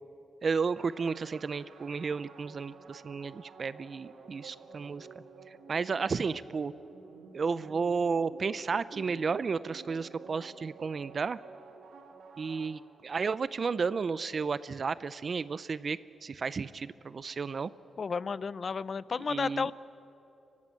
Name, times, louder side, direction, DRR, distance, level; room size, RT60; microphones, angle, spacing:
voice 1, 0.4-5.1 5.5-6.7 7.3-11.4 12.4-17.7 19.3-19.7, right 5 dB, 45° right, 16 dB, 0.5 m, -32 dB
sound 1, 0.8-13.3, right 4 dB, 90° right, 2.3 m, -51 dB
voice 2, 18.0-19.7, left 5 dB, 45° left, 18 dB, 0.5 m, -32 dB
24.5 x 16.0 x 10.0 m, 2.7 s
cardioid pair, 105°, 0 cm